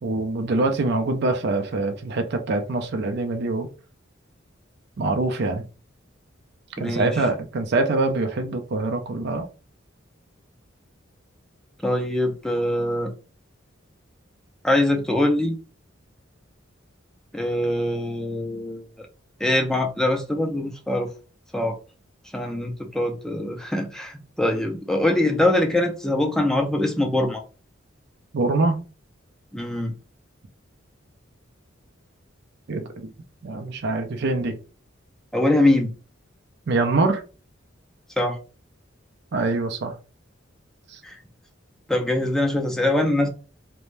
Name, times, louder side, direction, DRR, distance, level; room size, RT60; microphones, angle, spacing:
voice 1, 0.0-3.7 5.0-5.6 6.8-9.5 28.3-28.8 32.7-33.1 33.4-34.5 36.7-37.2 39.3-39.9 40.9-41.0, right 3 dB, 60° right, 0.5 m, -24 dB
voice 2, 6.8-7.2 11.8-13.1 14.6-15.6 17.3-18.9 19.4-21.1 21.5-21.8 22.3-27.4 29.5-29.9 35.3-35.9 38.2-38.4 41.0-41.2 41.9-43.3, left 1 dB, 5° left, 0.4 m, -23 dB
2.6 x 2.1 x 3.1 m
head